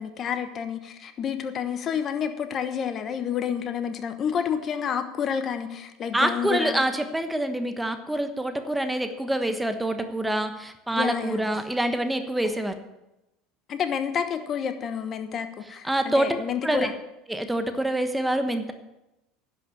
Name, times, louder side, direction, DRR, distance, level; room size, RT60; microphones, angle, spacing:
voice 1, 0.0-6.7 10.9-11.5 13.7-16.9, left 7 dB, 45° left, 9 dB, 1.1 m, -29 dB
voice 2, 6.1-12.7 15.8-16.4 16.6-16.9 17.3-18.7, right 1 dB, 5° right, 8 dB, 1.2 m, -26 dB
10.5 x 6.0 x 8.5 m, 0.95 s
hypercardioid pair, 80°, 0 cm